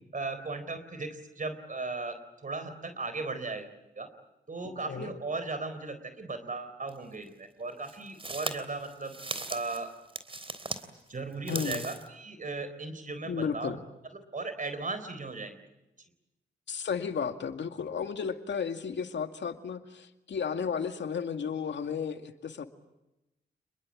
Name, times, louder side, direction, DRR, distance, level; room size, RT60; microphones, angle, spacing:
voice 1, 0.1-4.1 4.5-9.2 9.5-9.9 11.1-13.8 14.1-15.6, right 3 dB, 45° right, 10 dB, 4.0 m, -37 dB
voice 2, 4.6-5.2 11.5-11.9 13.3-13.9 16.7-22.7, left 6 dB, 80° left, 7 dB, 2.2 m, -33 dB
sound 1, 6.9-7.0 7.8-10.9 11.3-12.1, right 2 dB, 30° right, 3.4 m, -38 dB
29.0 x 22.0 x 8.7 m, 0.93 s
cardioid pair, 75°, 18 cm